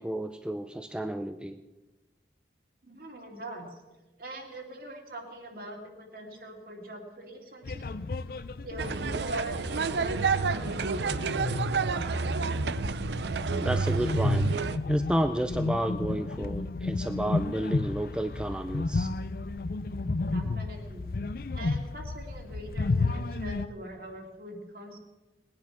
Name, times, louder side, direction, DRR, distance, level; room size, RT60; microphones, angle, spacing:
voice 1, 0.0-1.6 13.6-14.5 14.9-19.1, right 1 dB, 5° right, 8 dB, 0.4 m, -31 dB
voice 2, 2.8-3.8 4.2-8.0 8.6-11.4 20.3-21.1 21.5-25.0, right 1 dB, 55° right, 2 dB, 2.5 m, -42 dB
sound 1, 7.6-23.7, left 3 dB, 55° left, 0.5 m, -33 dB
sound 2, 8.8-14.8, right 4 dB, 75° right, 0.5 m, -29 dB
19.5 x 9.7 x 5.9 m, 1.1 s
head